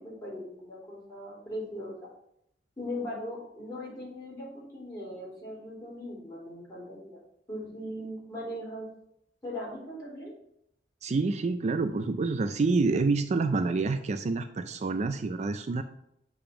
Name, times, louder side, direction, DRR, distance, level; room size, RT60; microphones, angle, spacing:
voice 1, 0.0-2.1 2.8-7.2 7.5-8.9 9.4-10.3, left 1 dB, 20° left, -6 dB, 2.9 m, -39 dB
voice 2, 11.0-15.8, right 3 dB, 40° right, 8 dB, 0.4 m, -27 dB
6.9 x 3.6 x 5.7 m, 0.76 s
head